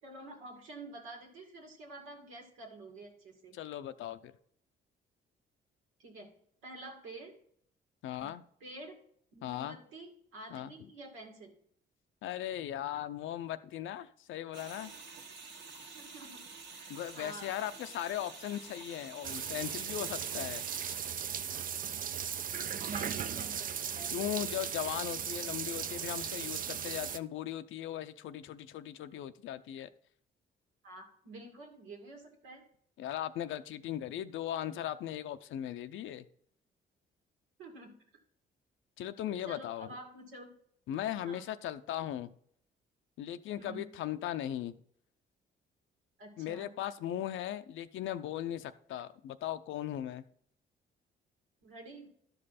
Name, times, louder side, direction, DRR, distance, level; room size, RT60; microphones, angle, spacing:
voice 1, 0.0-3.6 6.0-6.3 6.6-7.4 8.2-8.3 8.6-9.0 9.3-11.5 15.9-16.4 16.7-17.5 22.9-24.1 30.8-32.6 37.6-37.9 39.5-40.5 41.2-41.5 43.6-43.9 46.2-46.7 51.6-52.1, right 2 dB, 90° right, 2.2 m, -49 dB
voice 2, 3.5-4.3 8.0-8.4 9.4-9.8 10.5-10.7 12.2-14.9 16.9-21.0 24.1-29.9 33.0-36.2 39.0-40.0 40.9-42.3 43.2-44.7 46.4-50.2, left 11 dB, 80° left, 0.5 m, -38 dB
Water Faucet, 14.5-21.0, right 4 dB, 65° right, 1.6 m, -49 dB
sound 1, 19.2-27.2, right 8 dB, 45° right, 0.5 m, -37 dB
12.0 x 5.4 x 4.2 m
cardioid pair, 90°, 20 cm